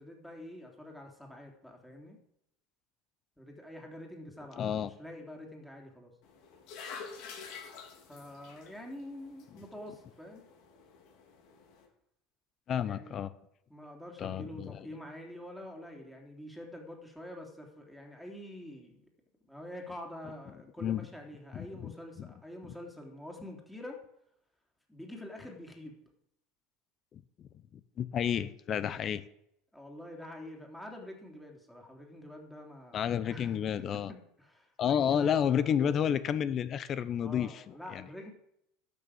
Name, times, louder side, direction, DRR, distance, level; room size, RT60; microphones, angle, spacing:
voice 1, 0.0-2.2 3.4-6.1 8.1-10.4 12.8-13.2 13.7-19.0 19.5-24.0 24.9-26.0 29.7-35.9 37.2-38.3, left 1 dB, 5° left, 0 dB, 3.5 m, -46 dB
voice 2, 4.6-4.9 12.7-13.3 14.2-14.9 20.8-21.0 21.5-21.9 28.0-29.2 32.9-34.1 34.8-37.6 37.9-38.0, left 8 dB, 40° left, 15 dB, 0.8 m, -30 dB
sound 1, 6.2-11.9, left 6 dB, 65° left, 3.9 m, -49 dB
12.0 x 7.0 x 8.5 m, 0.75 s
supercardioid pair, 110°, 0 cm